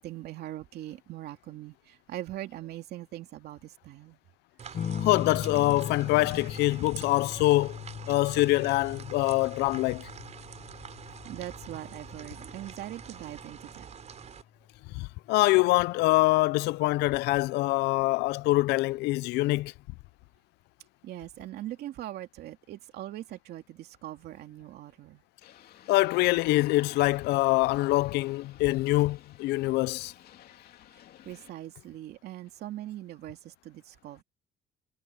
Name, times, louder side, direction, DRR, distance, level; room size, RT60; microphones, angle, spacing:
voice 1, 0.0-4.2 11.2-14.0 21.0-25.2 31.2-34.2, right 14 dB, 75° right, 2.6 m, -41 dB
sound 1, 4.6-14.4, right 7 dB, 40° right, 4.5 m, -46 dB
sound 2, 4.7-13.8 15.3-15.8, left 9 dB, 40° left, 0.9 m, -40 dB
voice 2, 5.0-7.8 8.1-10.1 14.9-19.7 25.9-30.1, left 19 dB, 85° left, 0.5 m, -25 dB
sound 3, 25.4-31.5, left 11 dB, 65° left, 2.7 m, -52 dB
cardioid pair, 110°, 17 cm